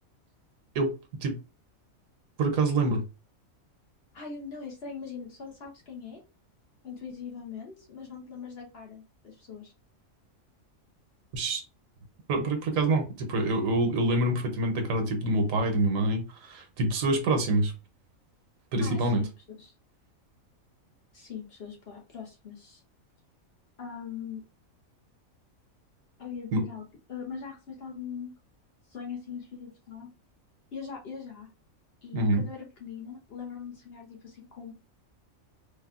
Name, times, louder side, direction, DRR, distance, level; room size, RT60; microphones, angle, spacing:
voice 1, 2.4-3.1 11.3-11.6 12.3-17.7 18.7-19.2 26.5-26.6 32.1-32.4, right 2 dB, 75° right, 5 dB, 1.1 m, -26 dB
voice 2, 4.1-6.2 6.8-9.7 18.8-19.7 21.1-22.8 23.8-24.4 26.2-28.3 28.9-30.1 30.7-31.5 32.0-34.7, left 6 dB, 55° left, 1 dB, 0.9 m, -41 dB
3.5 x 2.2 x 2.3 m, 0.30 s
omnidirectional pair, 1.4 m